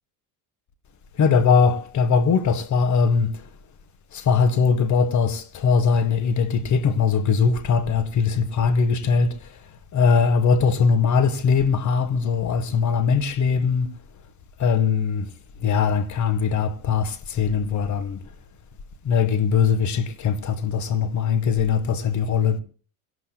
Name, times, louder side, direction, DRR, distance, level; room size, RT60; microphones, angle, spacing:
voice 1, 1.2-3.3 4.1-9.3 9.9-13.9 14.6-15.3 15.6-18.2 19.0-22.6, left 5 dB, 40° left, 1.4 m, -21 dB
26.0 x 17.5 x 2.2 m
supercardioid pair, 115°, 46 cm